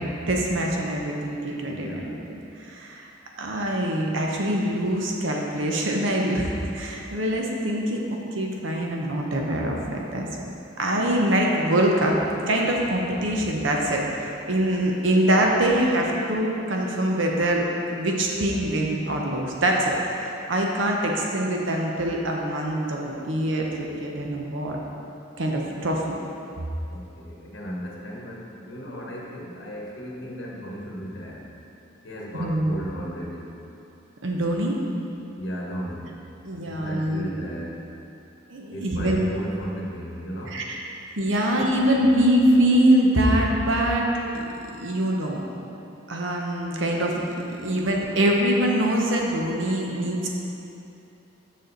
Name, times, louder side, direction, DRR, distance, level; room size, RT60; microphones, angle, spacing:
voice 1, 0.3-3.1 3.4-8.0 8.3-10.3 10.8-12.2 12.5-19.9 20.2-24.8 25.4-26.0 32.4-32.7 34.2-34.8 36.4-37.3 38.5-39.2 40.5-40.8 41.2-44.4 44.8-45.4 46.1-50.3, right 1 dB, 90° right, 0 dB, 0.9 m, -24 dB
voice 2, 1.6-2.2 26.9-31.5 32.0-33.5 35.4-36.2 36.7-37.8 38.7-40.6 41.4-41.5, equal, 65° left, -3 dB, 1.2 m, -35 dB
6.5 x 6.3 x 4.1 m, 2.8 s
head